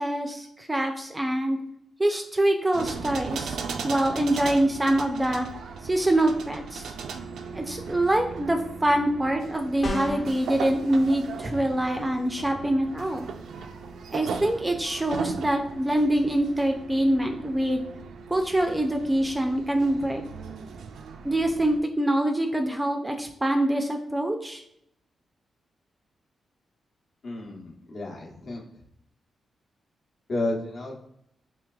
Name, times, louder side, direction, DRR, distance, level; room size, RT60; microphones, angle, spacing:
voice 1, 0.0-1.6 2.0-3.6 3.8-5.5 5.8-6.9 7.5-13.3 14.1-17.8 18.3-20.2 21.2-24.6, right 1 dB, 15° right, 4 dB, 0.4 m, -25 dB
sound 1, 2.7-21.8, right 5 dB, 85° right, 0.3 m, -38 dB
sound 2, 9.8-10.4, left 1 dB, 35° left, 0.6 m, -30 dB
voice 2, 27.2-28.6 30.3-31.0, left 2 dB, 60° left, -2 dB, 1.0 m, -32 dB
4.6 x 3.2 x 2.3 m, 0.75 s
wide cardioid pair, 130°, 0 cm